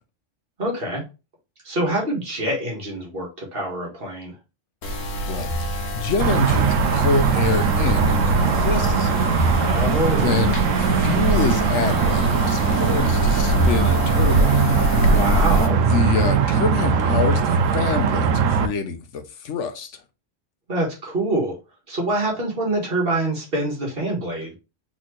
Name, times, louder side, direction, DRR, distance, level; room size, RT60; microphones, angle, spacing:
voice 1, 0.6-1.0 1.6-4.3 9.6-10.5 15.0-15.8 20.7-21.6 21.9-24.6, right 1 dB, 50° right, 1.7 m, -25 dB
sound 1, 4.8-15.7, equal, 90° left, 1.3 m, -24 dB
voice 2, 5.3-9.3 10.2-14.6 15.8-20.0, left 5 dB, 75° left, 1.0 m, -26 dB
sound 2, 5.5-6.3 9.4-10.4 13.6-14.5, right 1 dB, ahead, 1.6 m, -27 dB
sound 3, 6.2-18.7, right 6 dB, 85° right, 1.0 m, -20 dB
4.3 x 3.7 x 3.0 m
omnidirectional pair, 1.3 m